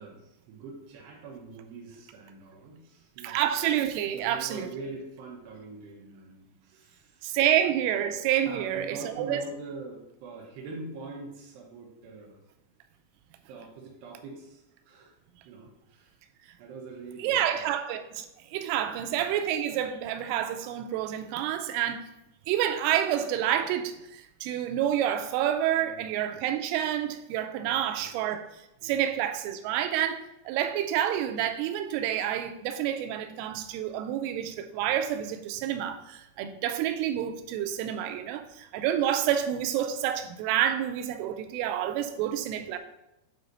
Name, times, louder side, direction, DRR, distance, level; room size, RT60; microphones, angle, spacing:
voice 1, 0.0-3.4 4.1-7.4 7.7-7.8 8.4-12.4 13.5-15.1 15.5-16.1 16.6-17.7 18.8-19.0 25.7-26.1 27.6-28.1 28.8-29.0 38.1-38.2, right 3 dB, 70° right, 2.9 m, -44 dB
voice 2, 3.2-4.7 7.2-9.4 17.2-22.0 22.5-28.4 28.8-42.8, right 10 dB, 90° right, 3.1 m, -28 dB
9.5 x 4.0 x 4.0 m
omnidirectional pair, 5.6 m